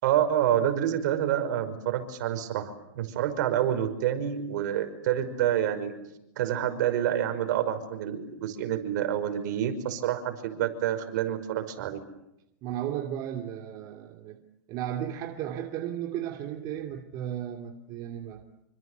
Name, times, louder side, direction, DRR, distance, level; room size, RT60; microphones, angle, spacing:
voice 1, 0.0-5.9 6.4-12.0, right 10 dB, 60° right, 5.7 m, -28 dB
voice 2, 12.6-14.4 14.7-18.4, right 10 dB, 40° right, 2.8 m, -35 dB
27.5 x 25.5 x 8.3 m
supercardioid pair, 140°, 11 cm